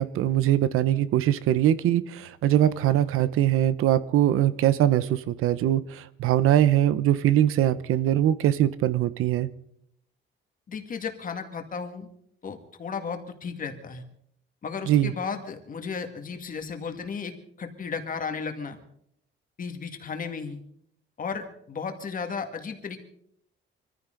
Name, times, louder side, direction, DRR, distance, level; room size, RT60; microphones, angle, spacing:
voice 1, 0.0-9.5 14.9-15.1, right 12 dB, 85° right, 0.8 m, -22 dB
voice 2, 10.7-12.1 12.4-14.0 14.6-18.8 19.6-20.6 21.2-23.0, left 5 dB, 40° left, 2.0 m, -34 dB
24.5 x 14.5 x 3.9 m
cardioid pair, 135°, 21 cm